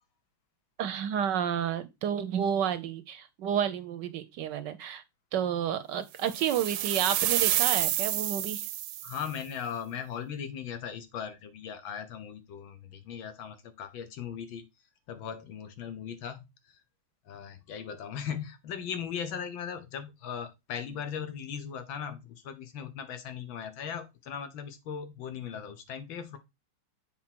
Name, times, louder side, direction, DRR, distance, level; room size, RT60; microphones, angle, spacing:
voice 1, 0.8-5.0 5.3-8.7, right 9 dB, 70° right, 1.2 m, -30 dB
sound 1, 6.3-9.3, right 13 dB, 85° right, 1.5 m, -29 dB
voice 2, 9.0-14.7 15.1-16.4 17.3-26.4, left 8 dB, 75° left, 1.7 m, -38 dB
7.3 x 4.3 x 4.4 m
omnidirectional pair, 2.2 m